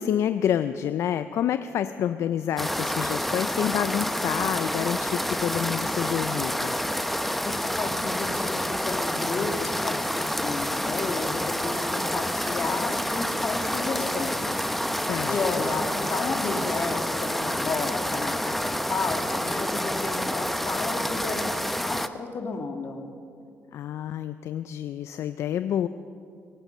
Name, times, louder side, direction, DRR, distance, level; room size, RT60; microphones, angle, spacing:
voice 1, 0.0-6.7 14.9-15.7 23.7-25.9, left 10 dB, 65° left, 11 dB, 0.4 m, -28 dB
sound 1, 2.6-22.1, equal, 5° left, 0.7 m, -28 dB
voice 2, 7.4-10.0 10.3-14.5 15.3-23.1, left 4 dB, 45° left, 4 dB, 2.0 m, -32 dB
23.0 x 9.1 x 5.6 m, 2.4 s
supercardioid pair, 75°, 5 cm